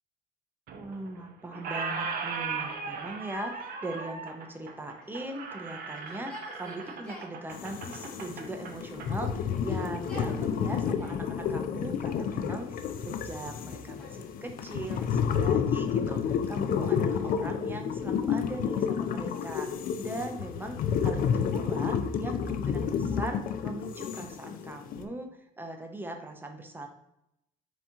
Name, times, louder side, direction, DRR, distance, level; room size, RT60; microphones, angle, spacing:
voice 1, 0.7-26.9, right 1 dB, 10° right, 4 dB, 0.6 m, -40 dB
Squeak, 0.7-1.2 1.5-9.1, right 5 dB, 60° right, 0.7 m, -38 dB
Yell, 5.0-7.4 8.3-9.0 9.4-11.3 12.0-12.7 13.4-15.2 16.6-17.4 18.3-20.0, left 1 dB, 5° left, 1.3 m, -51 dB
sound 1, 7.5-25.1, left 7 dB, 55° left, 0.4 m, -30 dB
4.1 x 2.9 x 3.5 m, 0.81 s
cardioid pair, 110°, 17 cm